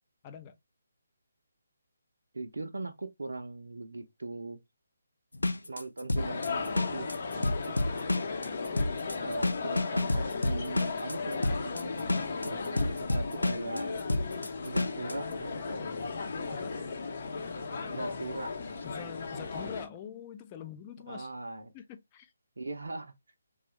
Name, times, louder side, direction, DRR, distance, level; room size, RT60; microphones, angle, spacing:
voice 1, 0.2-0.6 16.5-16.7 18.8-21.3 21.7-22.3, left 8 dB, 25° left, 0.5 m, -45 dB
voice 2, 2.3-4.6 5.6-7.8 9.2-14.0 14.6-15.9 17.9-18.6 21.1-21.7 22.6-23.1, right 2 dB, 75° right, 0.6 m, -40 dB
sound 1, 5.3-15.1, left 2 dB, 90° left, 0.4 m, -30 dB
sound 2, 6.2-19.9, left 4 dB, 50° left, 0.8 m, -36 dB
3.4 x 2.3 x 3.0 m
figure-of-eight pair, 150°, 0 cm